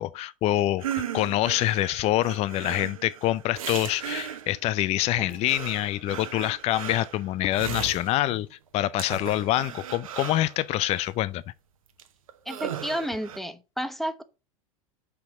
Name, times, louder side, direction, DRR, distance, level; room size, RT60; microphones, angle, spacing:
voice 1, 0.0-11.4, left 15 dB, 35° left, 0.4 m, -26 dB
sound 1, 0.8-4.7 5.2-8.4 9.0-11.1 12.0-12.1 12.3-13.4, right 9 dB, 75° right, 0.9 m, -37 dB
voice 2, 12.5-14.2, equal, ahead, 0.9 m, -31 dB
5.8 x 5.7 x 6.0 m
hypercardioid pair, 85°, 18 cm